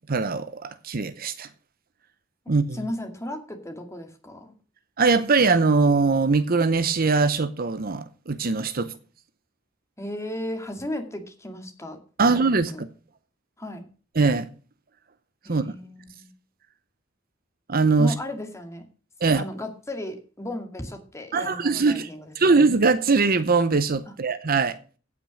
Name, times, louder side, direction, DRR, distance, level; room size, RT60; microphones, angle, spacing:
voice 1, 0.1-1.5 2.5-2.8 5.0-8.9 12.2-12.9 14.2-14.5 15.5-15.7 17.7-18.1 19.2-19.4 21.3-22.1 22.4-24.8, right 4 dB, 50° right, 0.8 m, -21 dB
voice 2, 2.7-4.5 10.0-12.0 12.2-12.4 12.7-12.8 13.6-13.8 15.4-16.3 18.0-18.8 19.3-22.3, left 1 dB, 15° left, 2.2 m, -35 dB
16.5 x 6.1 x 6.4 m
head